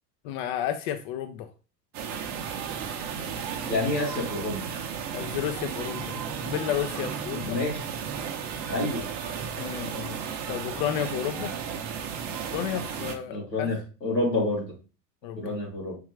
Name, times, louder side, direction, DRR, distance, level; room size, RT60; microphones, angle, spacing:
voice 1, 0.2-1.5 5.1-6.2 6.4-7.6 9.6-10.2 10.5-11.5 12.5-13.7 15.2-15.6, left 10 dB, 35° left, 8 dB, 0.4 m, -32 dB
sound 1, 1.9-13.2, right 7 dB, 35° right, 0.7 m, -34 dB
voice 2, 3.7-4.7 7.3-7.8 8.7-9.0 13.3-14.7 15.4-16.0, left 2 dB, 80° left, -3 dB, 2.1 m, -28 dB
4.9 x 3.1 x 3.2 m, 0.34 s
figure-of-eight pair, 80°, 50 cm